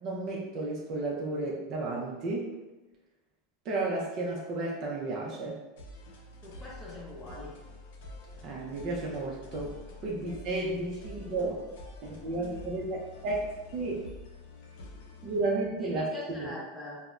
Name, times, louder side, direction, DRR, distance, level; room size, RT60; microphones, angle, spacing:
voice 1, 0.0-2.5 3.6-5.6 8.4-9.7 10.0-11.6 12.0-13.0 13.2-14.0 15.2-16.1 16.4-16.5, right 2 dB, 40° right, -3 dB, 0.5 m, -32 dB
sound 1, 5.8-15.4, left 2 dB, 75° left, 0.5 m, -47 dB
voice 2, 6.4-7.5 10.1-10.3 15.8-17.0, left 2 dB, 15° left, -5 dB, 0.6 m, -43 dB
3.2 x 2.0 x 2.4 m, 1.1 s
supercardioid pair, 145°, 0 cm